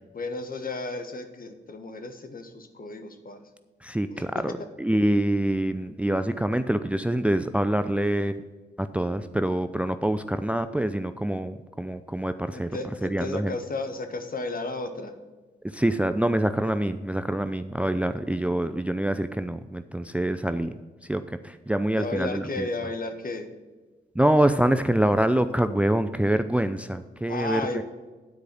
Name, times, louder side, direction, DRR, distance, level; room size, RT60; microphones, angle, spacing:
voice 1, 0.1-3.4 4.1-4.7 12.5-15.1 21.9-23.5 27.3-27.8, left 2 dB, 45° left, 7 dB, 1.3 m, -33 dB
voice 2, 3.8-4.5 4.8-8.3 8.8-12.7 13.0-13.5 15.7-20.7 21.1-22.7 24.2-27.8, right 1 dB, 5° right, 10 dB, 0.5 m, -25 dB
9.3 x 4.8 x 7.5 m, 1.3 s
hypercardioid pair, 40°, 20 cm